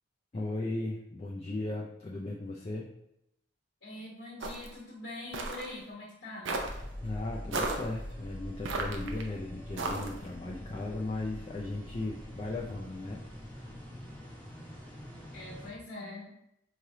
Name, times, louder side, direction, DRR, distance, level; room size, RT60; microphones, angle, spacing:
voice 1, 0.3-2.9 7.0-13.2 13.6-13.7, left 2 dB, 30° left, -3 dB, 0.4 m, -37 dB
voice 2, 3.8-6.6 15.3-16.3, left 2 dB, 70° left, -5 dB, 1.5 m, -43 dB
sound 1, 4.4-4.7 5.3-5.7 6.5-6.8 7.5-7.9 8.7-9.2 9.8-10.3, right 3 dB, 80° right, 0.6 m, -34 dB
sound 2, 6.6-15.7, left 1 dB, 10° left, 0.8 m, -44 dB
4.9 x 3.2 x 2.8 m, 0.80 s
head